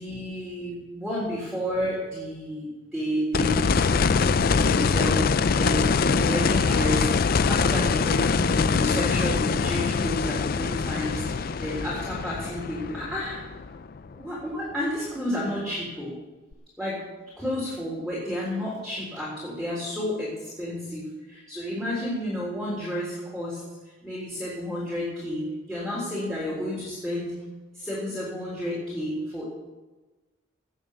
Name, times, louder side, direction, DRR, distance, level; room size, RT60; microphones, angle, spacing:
voice 1, 0.0-5.2 5.6-13.4 14.2-16.1 16.8-17.0 17.4-27.4 27.7-29.5, equal, ahead, -8 dB, 3.7 m, -31 dB
sound 1, 3.3-14.2 16.5-16.6, left 5 dB, 45° left, 0.4 m, -24 dB
18.0 x 7.4 x 6.9 m, 1.2 s
head